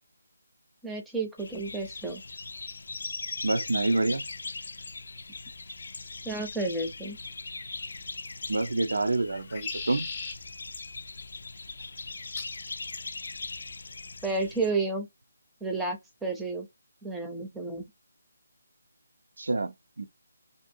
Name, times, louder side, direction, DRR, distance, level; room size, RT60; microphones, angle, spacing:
voice 1, 0.8-2.2 6.2-7.2 14.2-15.1 15.6-16.7 17.0-17.8, right 3 dB, 5° right, 0.5 m, -31 dB
sound 1, 1.4-14.7, left 3 dB, 65° left, 0.3 m, -40 dB
voice 2, 3.4-4.2 8.5-10.1 19.4-20.1, right 2 dB, 75° right, 0.4 m, -27 dB
sound 2, 8.3-8.8 9.3-10.4 12.3-12.6 13.5-13.9, left 4 dB, 30° left, 0.7 m, -38 dB
2.7 x 2.5 x 2.6 m
figure-of-eight pair, 165°, 0 cm